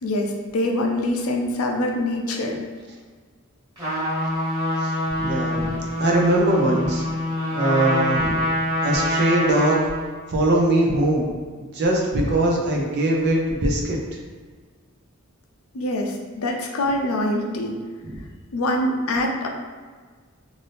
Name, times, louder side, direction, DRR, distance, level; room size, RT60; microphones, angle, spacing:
voice 1, 0.0-2.6 15.7-17.8 18.5-19.5, left 1 dB, 75° left, 1 dB, 0.5 m, -24 dB
Trumpet, 3.8-10.1, left 1 dB, 20° right, 1.3 m, -25 dB
voice 2, 5.2-7.0 7.5-8.4 8.8-9.9 10.3-11.3 11.6-14.0 18.0-18.2, right 1 dB, 50° right, -1 dB, 0.6 m, -21 dB
2.6 x 2.5 x 3.3 m, 1.5 s
head